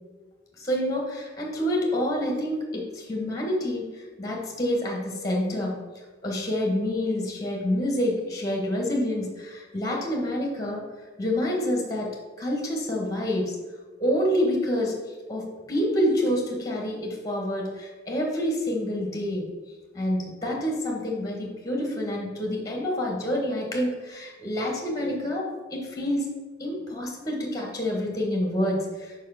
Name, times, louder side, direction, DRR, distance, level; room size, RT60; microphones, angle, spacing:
voice 1, 0.6-5.8 6.2-10.8 11.2-12.1 12.4-13.6 14.0-14.9 15.3-19.4 19.9-26.3 26.6-29.1, equal, 20° left, 0 dB, 1.4 m, -27 dB
5.2 x 4.7 x 5.9 m, 1.3 s
head